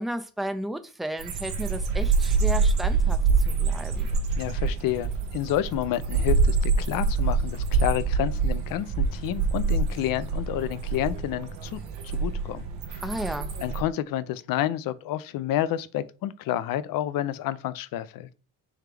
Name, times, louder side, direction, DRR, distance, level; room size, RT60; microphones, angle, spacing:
voice 1, 0.0-4.1 13.0-13.5, right 1 dB, ahead, 0.4 m, -33 dB
sound 1, 1.2-13.8, right 4 dB, 75° right, 0.9 m, -26 dB
voice 2, 4.4-13.0 13.6-18.3, left 12 dB, 55° left, 0.5 m, -30 dB
3.5 x 3.2 x 3.3 m
hypercardioid pair, 55°, 44 cm